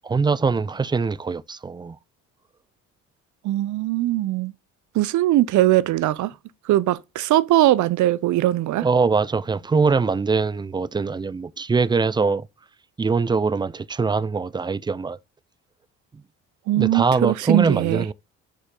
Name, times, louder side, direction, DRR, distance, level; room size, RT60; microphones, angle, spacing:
voice 1, 0.0-2.0 8.7-12.5 13.0-15.2 16.7-18.1, right 4 dB, 15° right, 0.3 m, -22 dB
voice 2, 3.4-4.5 4.9-6.3 6.7-8.9 16.7-18.1, right 15 dB, 65° right, 0.6 m, -20 dB
6.4 x 5.2 x 3.7 m
supercardioid pair, 75°, 32 cm